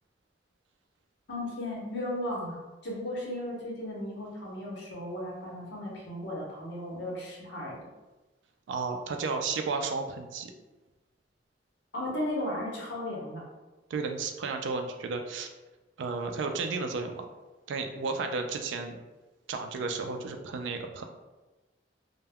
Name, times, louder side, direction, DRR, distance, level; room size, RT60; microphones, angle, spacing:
voice 1, 1.3-7.9 11.9-13.4, left 1 dB, 65° left, -3 dB, 0.8 m, -35 dB
voice 2, 8.7-10.5 13.9-15.5 16.0-17.3 17.7-19.0 19.5-21.0, right 4 dB, 70° right, 5 dB, 0.3 m, -33 dB
2.2 x 2.1 x 3.4 m, 1.1 s
head